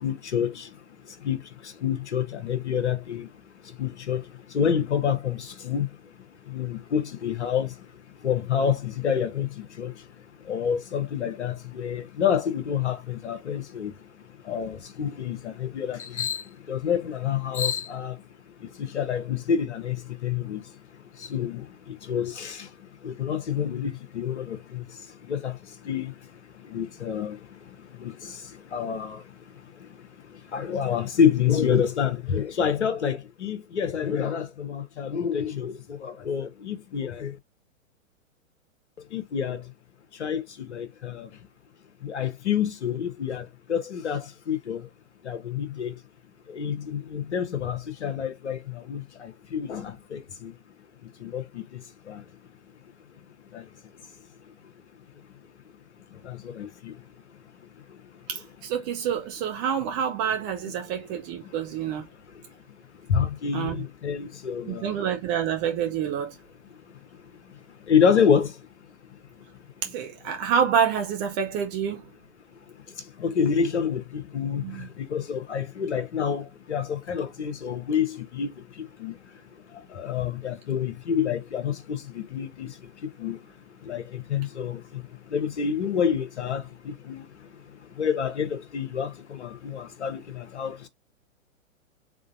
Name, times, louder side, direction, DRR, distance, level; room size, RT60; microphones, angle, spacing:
voice 1, 0.0-0.7 1.2-1.4 1.8-3.3 3.8-4.2 4.5-5.9 6.5-7.7 8.2-9.9 10.5-13.9 14.5-16.4 16.7-18.2 18.9-20.6 21.3-21.6 22.1-22.7 23.0-24.8 25.3-25.5 25.9-26.1 26.7-27.4 28.0-28.3 28.7-29.2 30.5-37.3 39.1-39.6 40.2-41.3 42.0-44.8 45.2-45.9 46.5-50.5 51.2-51.6 52.1-52.2 53.5-53.6 56.2-56.9 63.1-64.9 67.9-68.5 73.2-74.6 75.0-78.5 79.0-79.1 79.9-82.7 83.2-83.4 83.9-84.8 85.3-87.2 88.0-90.9, left 7 dB, 55° left, 1.1 m, -27 dB
voice 2, 58.3-62.0 63.5-63.8 64.7-66.3 69.8-72.0 74.6-74.9, right 8 dB, 15° right, 0.6 m, -27 dB
3.8 x 3.7 x 2.5 m
figure-of-eight pair, 110°, 41 cm